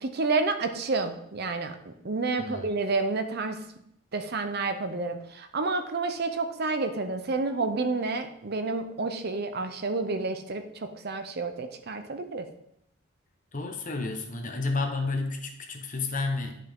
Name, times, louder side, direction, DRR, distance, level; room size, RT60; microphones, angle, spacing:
voice 1, 0.0-3.6 4.1-12.5, right 3 dB, 50° right, 8 dB, 0.7 m, -30 dB
voice 2, 2.4-2.7 13.5-16.5, left 3 dB, 40° left, 3 dB, 1.1 m, -31 dB
10.0 x 5.5 x 3.6 m, 0.74 s
head